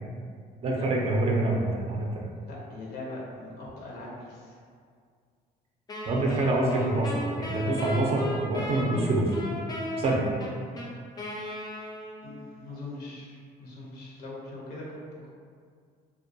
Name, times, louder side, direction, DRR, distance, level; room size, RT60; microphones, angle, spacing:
voice 1, 0.6-2.2 6.1-7.1 7.4-9.3 10.0-10.2, right 2 dB, 35° right, -2 dB, 0.4 m, -26 dB
voice 2, 2.4-4.6 6.2-6.8 12.2-15.0, left 2 dB, 70° left, -5 dB, 0.7 m, -40 dB
Wind instrument woodwind instrument, 5.9-12.5, left 1 dB, 25° left, 0.4 m, -35 dB
2.2 x 2.1 x 2.6 m, 2.1 s
cardioid pair, 110°, 17 cm